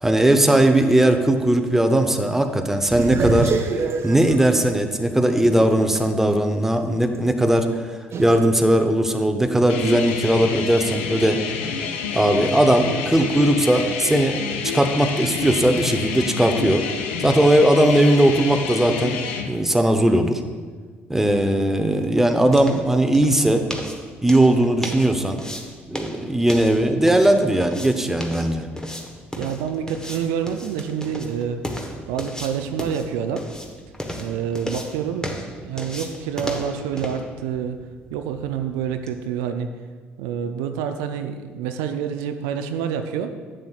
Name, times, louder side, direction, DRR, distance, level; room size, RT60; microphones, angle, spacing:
voice 1, 0.0-3.5 4.0-7.8 8.2-11.4 12.1-16.8 17.2-20.4 21.1-23.6 24.2-25.4 25.9-28.7, right 1 dB, 5° right, 6 dB, 0.7 m, -18 dB
sound 1, 2.9-6.0 6.4-6.5 8.1-8.4, right 4 dB, 45° right, 0.7 m, -26 dB
sound 2, 9.7-19.5, left 6 dB, 75° left, 0.6 m, -28 dB
sound 3, 21.4-39.2, left 1 dB, 10° left, 1.2 m, -35 dB
voice 2, 29.4-31.6 32.1-33.5 34.2-37.8 38.1-39.7 40.2-43.3, right 8 dB, 70° right, 8 dB, 0.4 m, -27 dB
10.5 x 7.6 x 2.4 m, 1.5 s
hypercardioid pair, 55°, 6 cm